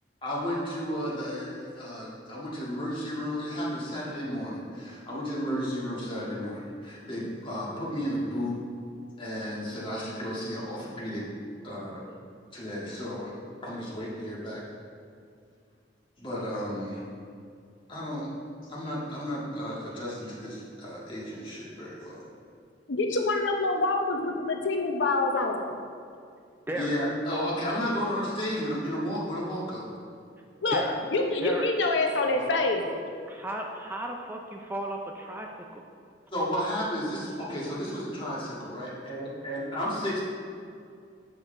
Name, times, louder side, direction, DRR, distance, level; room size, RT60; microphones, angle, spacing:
voice 1, 0.2-8.5 9.2-11.2 11.6-12.0 12.5-13.3 13.6-14.6 16.2-17.0 17.9-18.3 18.7-22.3 26.8-29.9 32.3-32.4 36.3-40.2, equal, 30° left, -6 dB, 1.8 m, -33 dB
voice 2, 22.9-25.6 30.6-30.8 31.1-32.9, left 3 dB, 90° left, 3 dB, 0.7 m, -26 dB
voice 3, 33.3-35.8, right 1 dB, 10° right, 1 dB, 0.4 m, -34 dB
7.5 x 6.3 x 3.8 m, 2.3 s
head